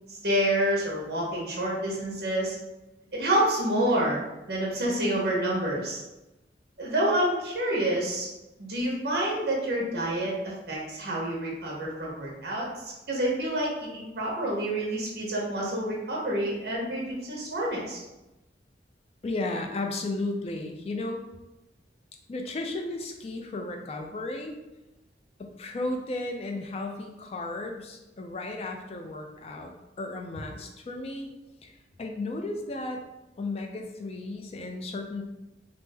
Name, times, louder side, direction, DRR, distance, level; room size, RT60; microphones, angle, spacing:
voice 1, 0.1-2.5 3.1-4.2 4.5-6.0 6.8-8.3 8.6-18.0, right 1 dB, 65° right, -3 dB, 0.9 m, -28 dB
voice 2, 19.2-21.2 22.3-24.6 25.4-29.7 30.0-31.3 31.6-31.7 32.0-33.0 33.4-35.2, left 2 dB, 35° left, 4 dB, 0.3 m, -34 dB
3.3 x 2.0 x 3.2 m, 1.0 s
head